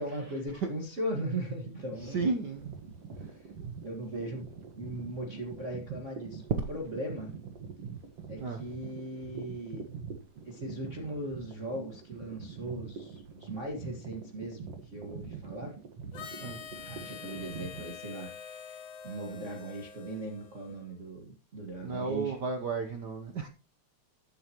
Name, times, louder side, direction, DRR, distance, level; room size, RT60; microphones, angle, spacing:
voice 1, 0.0-2.3 3.1-3.5 3.8-6.4 6.7-7.4 8.3-9.8 10.4-15.8 16.4-16.5 16.8-22.4, right 1 dB, 30° right, 1.7 m, -39 dB
sound 1, 1.8-17.9, right 6 dB, 60° right, 2.5 m, -45 dB
voice 2, 2.0-2.8 6.6-6.7 8.4-8.6 16.4-16.6 21.8-23.5, right 4 dB, 85° right, 0.9 m, -33 dB
Harmonica, 16.1-20.9, left 7 dB, 55° left, 1.5 m, -46 dB
14.5 x 10.0 x 3.0 m
omnidirectional pair, 3.3 m